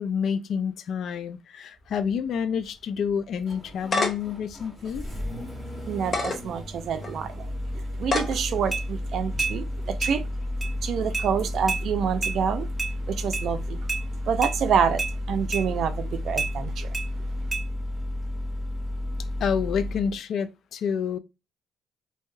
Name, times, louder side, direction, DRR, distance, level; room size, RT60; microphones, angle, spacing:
voice 1, 0.0-5.1 9.5-9.6 19.4-21.2, left 7 dB, 70° left, 0.3 m, -28 dB
Engine starting, 1.8-20.2, left 1 dB, 10° left, 1.2 m, -33 dB
sound 1, 3.5-4.3 4.9-5.0 6.0-6.4 7.0-7.1 8.0-8.4, left 3 dB, 40° left, 0.7 m, -26 dB
voice 2, 5.9-7.3 8.0-9.6 10.0-10.2 10.8-12.7 13.2-13.6 14.3-15.0 15.3-16.9, right 7 dB, 70° right, 0.4 m, -26 dB
sound 2, 8.7-8.8 9.4-9.6 10.0-10.2 10.6-10.7 11.1-11.3 11.7-11.8 12.2-12.4 12.8-12.9 13.3-13.5 13.9-14.0 14.4-14.5 15.0-15.1 15.5-15.7 16.4-16.5 16.9-17.1 17.5-17.6, right 4 dB, 15° right, 1.1 m, -28 dB
3.1 x 2.7 x 2.2 m
cardioid pair, 90°, 0 cm